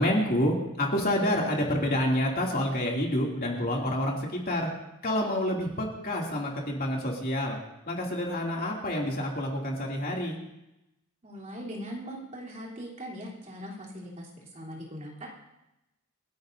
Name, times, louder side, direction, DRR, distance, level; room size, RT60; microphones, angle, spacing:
voice 1, 0.0-4.7 5.0-7.6 7.9-10.4, left 1 dB, 40° left, -2 dB, 2.7 m, -28 dB
voice 2, 11.2-15.3, equal, 30° right, -4 dB, 3.4 m, -40 dB
29.0 x 11.5 x 2.7 m, 0.93 s
head